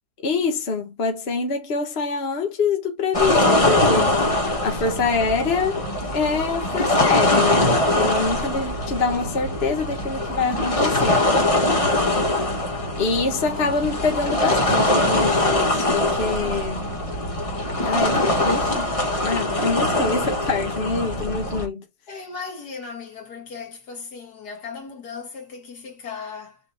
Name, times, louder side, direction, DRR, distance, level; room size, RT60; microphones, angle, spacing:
voice 1, 0.2-5.8 6.1-11.2 13.0-16.9 17.8-18.9 19.2-21.8, left 4 dB, 40° left, 1.3 m, -25 dB
sound 1, 3.1-21.7, left 1 dB, 20° left, 1.2 m, -22 dB
voice 2, 11.8-12.5 22.1-26.6, left 5 dB, 70° left, 2.0 m, -37 dB
6.3 x 2.8 x 2.6 m
omnidirectional pair, 1.8 m